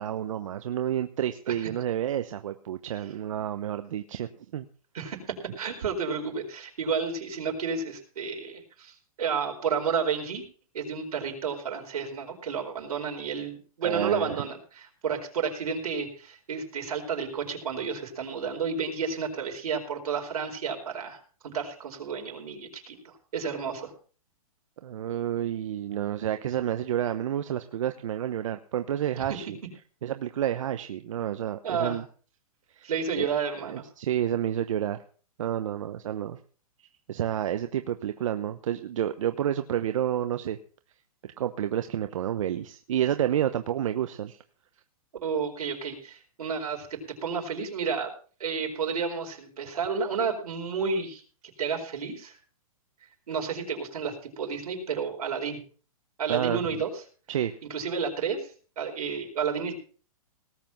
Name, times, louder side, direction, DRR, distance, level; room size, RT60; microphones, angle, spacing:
voice 1, 0.0-4.7 13.8-14.4 24.8-29.6 30.0-32.0 32.8-32.9 33.1-33.3 33.6-35.0 35.4-36.4 37.1-40.6 41.4-44.4 56.3-56.6 57.3-57.5, right 10 dB, 60° right, 9 dB, 0.9 m, -29 dB
voice 2, 4.9-10.4 10.7-23.9 29.2-29.4 31.6-32.0 32.8-33.8 45.2-48.1 48.4-51.2 51.6-52.4 53.3-55.6 56.2-57.0 57.7-59.7, right 6 dB, 85° right, 2 dB, 4.7 m, -31 dB
18.5 x 7.8 x 5.9 m, 0.41 s
hypercardioid pair, 170°, 19 cm